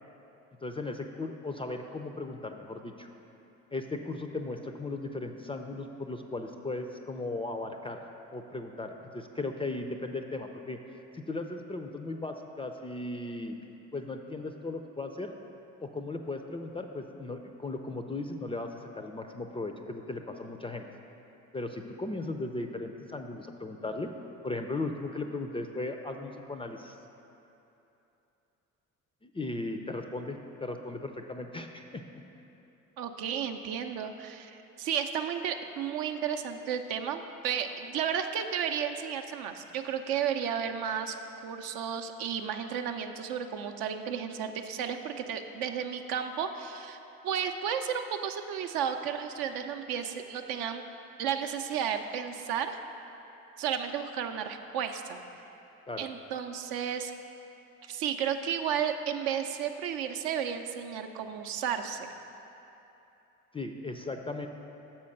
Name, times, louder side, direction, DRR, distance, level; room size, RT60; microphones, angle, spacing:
voice 1, 0.6-3.1 3.7-8.0 8.3-10.8 11.1-13.6 13.9-15.3 15.8-20.9 21.5-24.1 24.4-27.0 29.2-32.0 55.9-56.1 63.5-64.5, left 2 dB, 15° left, 5 dB, 0.4 m, -37 dB
voice 2, 33.0-41.2 41.4-47.0 47.2-50.8 51.2-52.8 53.6-55.2 56.0-57.1 57.9-62.1, right 8 dB, 65° right, 6 dB, 0.6 m, -33 dB
6.9 x 4.3 x 6.5 m, 2.9 s
hypercardioid pair, 50°, 40 cm